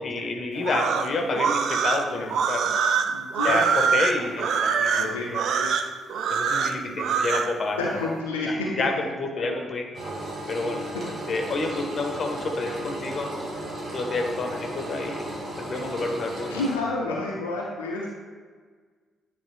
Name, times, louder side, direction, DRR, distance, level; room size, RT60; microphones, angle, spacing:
voice 1, 0.0-2.7 3.4-4.5 4.8-5.4 6.3-8.1 8.7-9.9 10.5-10.9 11.3-13.3 13.9-15.3 15.6-16.6 17.1-17.2, left 3 dB, 45° left, 2 dB, 1.0 m, -29 dB
sound 1, 0.6-7.5, right 6 dB, 55° right, 0.4 m, -24 dB
voice 2, 3.1-4.1 4.9-5.3 5.5-5.7 7.8-8.7 9.3-9.6 16.5-18.1, left 2 dB, 75° left, -3 dB, 0.7 m, -30 dB
Engine, 9.9-16.7, right 1 dB, 40° right, 1.6 m, -35 dB
9.3 x 3.5 x 3.3 m, 1.5 s
figure-of-eight pair, 40°, 0 cm